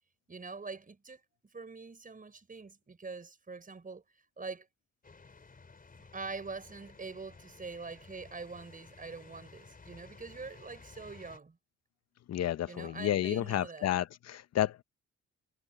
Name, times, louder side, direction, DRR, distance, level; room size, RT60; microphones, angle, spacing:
voice 1, 0.3-1.2 1.5-4.0 4.4-4.7 6.1-11.6 12.6-13.9, right 4 dB, 30° right, 5.4 m, -44 dB
sound 1, 5.0-11.4, left 4 dB, 30° left, 4.6 m, -55 dB
voice 2, 12.3-14.8, left 11 dB, 60° left, 0.8 m, -31 dB
cardioid pair, 90°, 30 cm